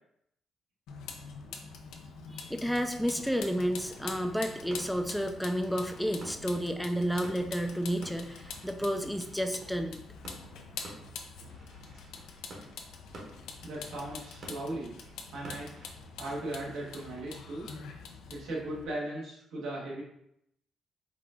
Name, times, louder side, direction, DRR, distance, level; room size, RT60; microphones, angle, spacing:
Vehicle, 0.9-18.8, left 5 dB, 85° left, 0.6 m, -45 dB
voice 1, 2.3-10.0, equal, ahead, 6 dB, 0.4 m, -31 dB
sound 1, 3.2-18.6, right 1 dB, 55° right, 1.2 m, -52 dB
voice 2, 13.6-15.0 15.3-15.9 16.2-17.7 18.3-20.0, right 1 dB, 85° right, -5 dB, 1.3 m, -38 dB
4.8 x 2.4 x 3.6 m, 0.77 s
cardioid pair, 90°, 0 cm